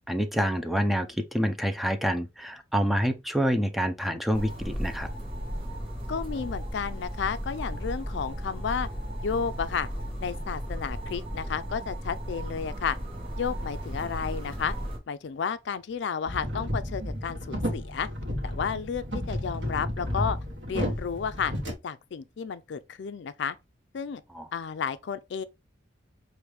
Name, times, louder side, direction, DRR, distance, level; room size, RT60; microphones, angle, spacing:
voice 1, 0.1-5.1 24.3-24.5, equal, ahead, 0.4 m, -27 dB
sound 1, 4.3-15.0, equal, 30° right, 1.1 m, -35 dB
voice 2, 6.1-8.9 9.2-9.9 10.2-13.0 13.4-14.7 15.1-18.1 18.4-20.4 20.7-21.5 21.8-23.6 23.9-24.2 24.5-25.4, left 6 dB, 65° left, 0.4 m, -32 dB
sound 2, 16.3-21.7, equal, 75° right, 1.2 m, -32 dB
4.9 x 2.6 x 3.2 m
head